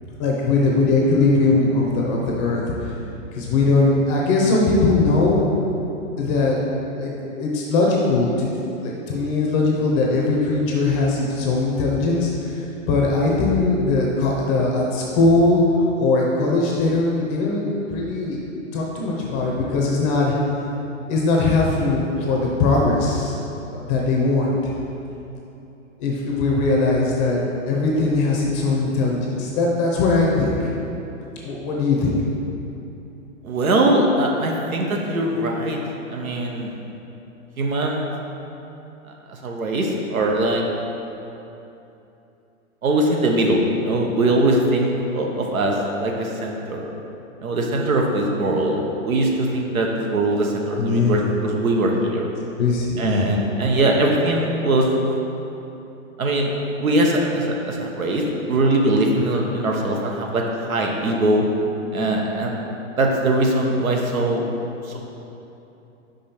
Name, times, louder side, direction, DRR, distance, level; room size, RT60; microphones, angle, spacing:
voice 1, 0.2-2.9 3.3-5.4 6.2-6.6 6.9-8.5 8.8-15.6 16.0-18.4 18.7-20.4 21.1-23.4 23.7-24.7 26.0-30.6 31.4-32.2 50.8-51.2 52.6-53.3, left 3 dB, 25° left, -3 dB, 0.6 m, -20 dB
voice 2, 33.4-35.8 36.1-36.8 37.6-38.1 39.3-40.6 42.8-46.9 47.4-52.3 53.0-54.9 56.2-56.5 56.8-61.4 61.9-62.7 63.0-64.5 64.8-65.0, right 1 dB, 90° right, 0 dB, 1.1 m, -21 dB
5.3 x 5.2 x 4.3 m, 2.9 s
hypercardioid pair, 135°, 40 cm